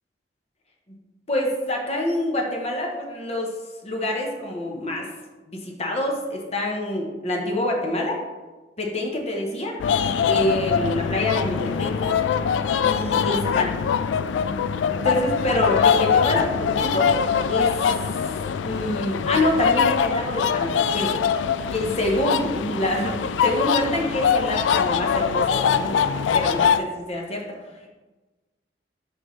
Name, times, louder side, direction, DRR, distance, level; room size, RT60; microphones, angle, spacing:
voice 1, 1.3-3.5 3.8-5.1 5.5-8.2 8.8-9.8 10.3-12.1 12.8-13.7 14.9-17.1 17.5-17.8 18.6-21.1 21.7-26.0 26.3-27.5, left 1 dB, 35° left, 0 dB, 0.9 m, -26 dB
sound 1, 9.8-26.8, left 7 dB, 85° left, 0.3 m, -23 dB
6.0 x 5.3 x 3.1 m, 1.2 s
head